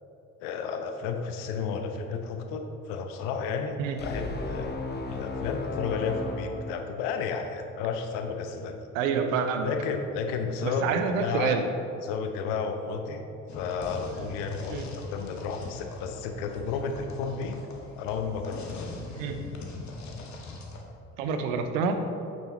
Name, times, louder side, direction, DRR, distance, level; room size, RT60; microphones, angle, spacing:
voice 1, 0.4-4.8 5.1-8.8 9.6-11.7 12.0-13.2 13.5-17.6 18.0-18.9, left 5 dB, 70° left, 5 dB, 0.9 m, -32 dB
sound 1, 4.0-7.5, left 3 dB, 25° left, 1.2 m, -35 dB
voice 2, 8.9-9.7 10.6-11.7 14.7-14.9 19.2-19.4 21.2-22.0, right 6 dB, 75° right, 7 dB, 0.8 m, -27 dB
sound 2, 13.5-20.8, left 3 dB, 45° left, 1.4 m, -42 dB
9.0 x 7.4 x 3.0 m, 2.8 s
hypercardioid pair, 55°, 39 cm